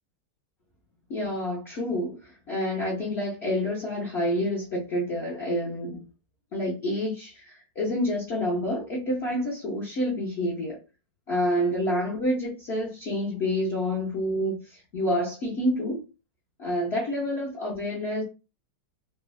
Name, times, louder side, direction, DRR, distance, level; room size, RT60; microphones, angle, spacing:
voice 1, 1.1-6.0 6.5-10.8 11.3-16.0 16.6-18.2, left 1 dB, 80° left, 0.5 m, -28 dB
3.6 x 2.0 x 2.2 m
omnidirectional pair, 2.2 m